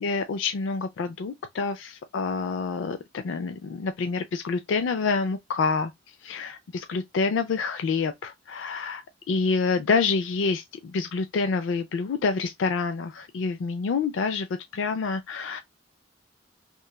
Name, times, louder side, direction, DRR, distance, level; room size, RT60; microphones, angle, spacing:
voice 1, 0.0-5.9 6.2-14.5 14.7-15.6, left 4 dB, 80° left, 0.4 m, -27 dB
3.0 x 2.3 x 2.2 m
head